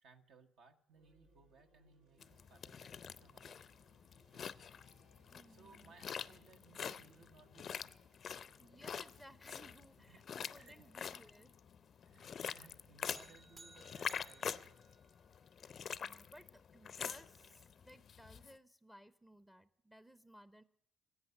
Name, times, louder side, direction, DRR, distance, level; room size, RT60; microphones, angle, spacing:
voice 1, 0.0-3.9 4.2-4.5 4.9-8.0 10.1-10.9 11.2-11.3 12.0-14.9 15.6-15.7, right 5 dB, 65° right, 5 dB, 1.1 m, -65 dB
sound 1, 0.9-13.1, right 1 dB, 80° right, 2.0 m, -74 dB
sound 2, 2.2-18.5, left 7 dB, 50° left, 0.5 m, -46 dB
voice 2, 5.3-5.9 8.6-11.6 16.0-20.6, equal, 10° right, 14 dB, 0.6 m, -60 dB
sound 3, 13.1-15.6, right 3 dB, 40° right, 1.0 m, -60 dB
13.5 x 8.4 x 9.6 m, 0.75 s
hypercardioid pair, 55°, 0 cm